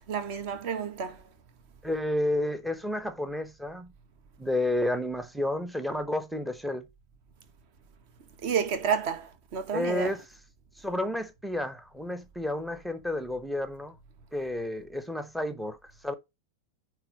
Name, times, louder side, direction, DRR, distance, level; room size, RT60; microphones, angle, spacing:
voice 1, 0.1-1.2 8.4-10.1, right 7 dB, 45° right, 1.5 m, -30 dB
voice 2, 1.8-3.9 4.4-6.8 9.7-10.3 10.8-14.0 14.3-15.8 16.0-16.1, left 1 dB, ahead, 0.8 m, -31 dB
9.0 x 3.3 x 5.0 m
figure-of-eight pair, 90°, 0 cm